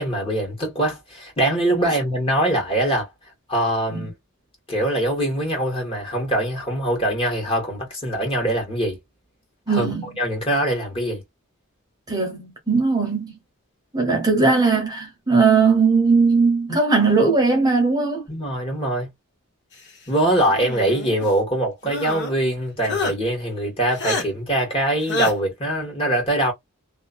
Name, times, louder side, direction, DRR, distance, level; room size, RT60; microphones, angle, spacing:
voice 1, 0.0-3.1 3.5-4.1 4.7-9.0 9.7-9.9 10.2-11.2 18.3-19.1 20.1-26.5, right 1 dB, 25° left, 1.5 m, -23 dB
voice 2, 9.7-10.0 12.1-13.3 13.9-18.2, right 4 dB, 20° right, 1.0 m, -19 dB
sound 1, 20.5-21.3 21.8-22.3 22.8-23.1 24.0-24.2 25.1-25.3, left 2 dB, 55° left, 1.2 m, -27 dB
2.8 x 2.3 x 2.5 m
head